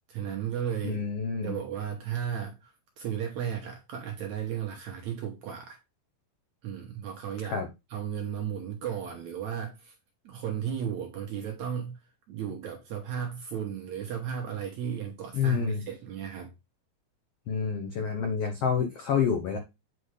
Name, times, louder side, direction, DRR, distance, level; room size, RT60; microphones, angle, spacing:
voice 1, 0.1-1.0 1.4-5.8 6.6-7.6 7.9-9.9 10.2-12.0 12.3-16.5, right 8 dB, 70° right, 1.8 m, -34 dB
voice 2, 0.8-1.6 7.5-7.7 15.3-15.8 17.5-19.6, left 6 dB, 80° left, 1.3 m, -28 dB
8.3 x 4.5 x 3.3 m
omnidirectional pair, 4.3 m